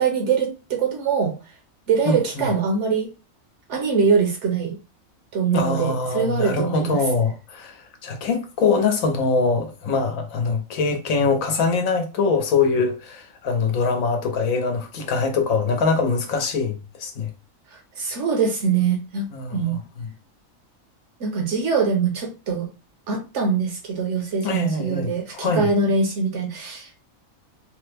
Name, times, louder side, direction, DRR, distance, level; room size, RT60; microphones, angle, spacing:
voice 1, 0.0-1.4 1.9-3.1 3.7-4.7 5.3-7.0 18.0-19.8 21.2-22.7 23.1-27.0, right 5 dB, 65° right, 1.0 m, -23 dB
voice 2, 2.1-2.5 5.5-17.3 19.3-20.1 24.4-25.7, left 4 dB, 80° left, 1.1 m, -23 dB
3.3 x 2.1 x 3.3 m
omnidirectional pair, 1.4 m